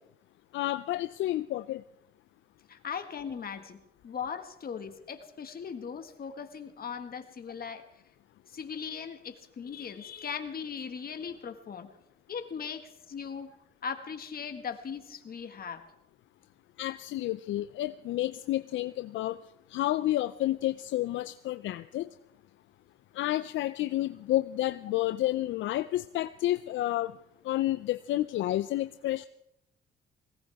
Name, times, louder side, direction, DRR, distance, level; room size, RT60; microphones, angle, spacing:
voice 1, 0.5-1.8 16.8-19.4 19.7-22.1 23.1-27.1 27.4-29.3, left 15 dB, 75° left, 13 dB, 0.5 m, -30 dB
voice 2, 2.7-7.9 8.5-11.9 12.3-13.5 13.8-15.8, left 6 dB, 50° left, 7 dB, 1.8 m, -39 dB
20.0 x 18.0 x 3.5 m, 0.80 s
cardioid pair, 90°, 20 cm